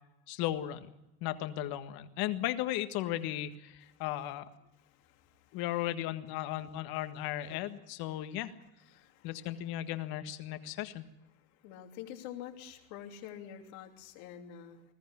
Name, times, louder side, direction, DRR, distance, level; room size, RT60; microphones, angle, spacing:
voice 1, 0.3-0.9 1.2-4.4 5.5-8.5 9.2-11.0, left 13 dB, 60° left, 9 dB, 1.7 m, -36 dB
voice 2, 4.8-5.6 6.5-6.6 7.5-7.6 8.0-8.3 8.9-9.7 10.6-10.8 11.3-14.8, left 10 dB, 75° left, 3 dB, 3.0 m, -49 dB
21.0 x 14.0 x 9.6 m, 0.92 s
supercardioid pair, 120°, 41 cm